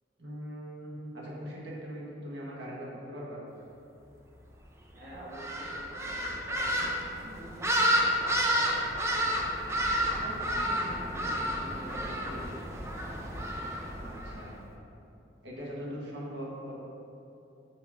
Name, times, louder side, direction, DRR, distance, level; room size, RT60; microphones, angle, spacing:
voice 1, 0.2-3.4 14.0-14.6 15.4-16.7, equal, 85° right, -5 dB, 1.4 m, -40 dB
voice 2, 4.9-9.4 9.9-12.6, right 1 dB, 55° right, -6 dB, 1.3 m, -46 dB
sound 1, 5.3-14.4, equal, 15° right, 0.5 m, -30 dB
5.8 x 5.1 x 3.6 m, 2.8 s
head